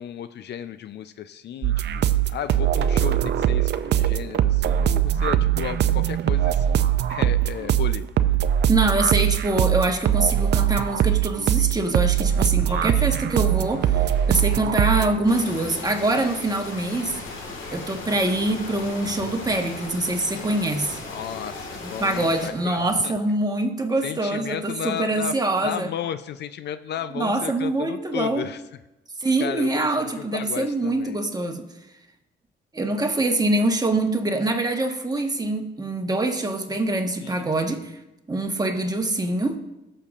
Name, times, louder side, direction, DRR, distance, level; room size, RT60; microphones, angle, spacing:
voice 1, 0.0-8.4 12.7-13.1 21.1-23.1 24.0-25.3 25.6-28.6 29.4-31.2 37.2-37.5, left 9 dB, 60° left, 12 dB, 0.4 m, -34 dB
sound 1, 1.6-15.1, right 11 dB, 60° right, 0.5 m, -21 dB
voice 2, 8.7-17.2 17.7-21.0 21.8-25.9 27.1-28.4 29.2-31.7 32.7-37.9 38.3-39.6, right 2 dB, 20° right, 3 dB, 1.3 m, -24 dB
sound 2, 13.4-23.0, left 3 dB, 40° left, 1.4 m, -43 dB
sound 3, 15.3-22.5, left 3 dB, 80° left, 1.7 m, -38 dB
16.5 x 6.6 x 2.4 m, 0.96 s
cardioid pair, 90°, 20 cm